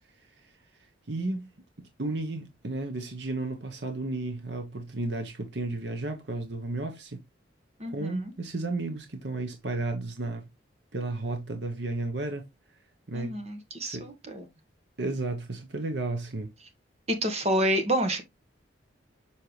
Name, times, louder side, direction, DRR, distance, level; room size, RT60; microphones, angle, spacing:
voice 1, 0.2-0.5 1.1-1.5 2.0-7.2 7.9-10.5 10.9-12.5 13.1-13.4 13.8-14.1 15.0-16.5, right 2 dB, 65° right, 1.0 m, -33 dB
voice 2, 7.8-8.3 13.1-14.4 17.1-18.2, right 1 dB, 35° right, 1.5 m, -28 dB
7.1 x 4.7 x 3.3 m
head